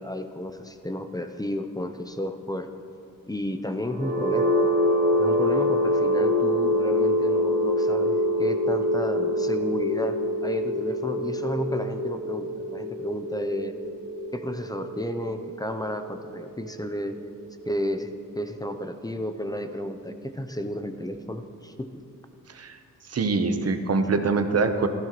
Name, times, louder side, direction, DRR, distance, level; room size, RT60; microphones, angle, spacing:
voice 1, 0.0-2.7 3.3-4.6 5.2-13.7 14.3-17.2 17.7-21.9, left 1 dB, 10° left, 7 dB, 0.6 m, -32 dB
sound 1, 3.8-17.7, equal, 25° right, 3.0 m, -25 dB
voice 2, 23.1-24.9, right 4 dB, 45° right, 7 dB, 0.9 m, -24 dB
15.5 x 13.0 x 3.0 m, 2.5 s
wide cardioid pair, 105°, 34 cm